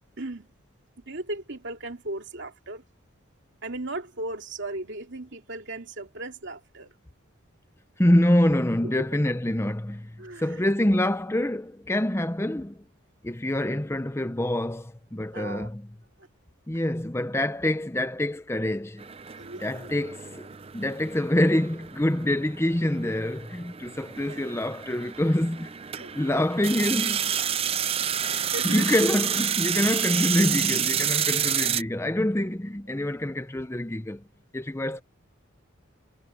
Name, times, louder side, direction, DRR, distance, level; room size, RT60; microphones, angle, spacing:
voice 1, 0.2-0.5 1.1-2.8 3.6-6.9 9.0-9.2 10.2-10.7 15.3-15.7 16.2-16.3 19.4-19.9 24.3-24.4 26.0-26.4 28.3-28.9 32.9-33.0, right 2 dB, 60° right, 2.7 m, -37 dB
voice 2, 8.0-12.8 13.2-15.8 16.7-19.1 19.6-20.5 20.7-27.3 28.6-34.2 34.5-35.0, left 1 dB, 10° left, 0.7 m, -26 dB
sound 1, 19.0-31.8, right 9 dB, 30° right, 0.5 m, -30 dB
head